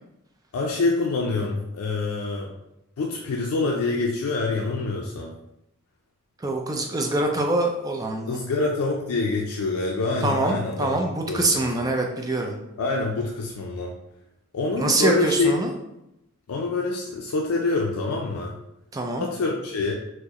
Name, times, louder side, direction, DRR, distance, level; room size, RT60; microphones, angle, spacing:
voice 1, 0.5-2.5 3.0-5.3 8.3-11.0 11.3-11.9 12.8-13.9 14.5-15.6 16.5-18.6 19.2-19.9, left 3 dB, 85° left, -1 dB, 0.4 m, -26 dB
voice 2, 6.4-8.4 10.2-12.6 14.8-15.7 18.9-19.3, right 2 dB, 15° right, 2 dB, 0.4 m, -24 dB
4.5 x 2.1 x 2.9 m, 0.86 s
head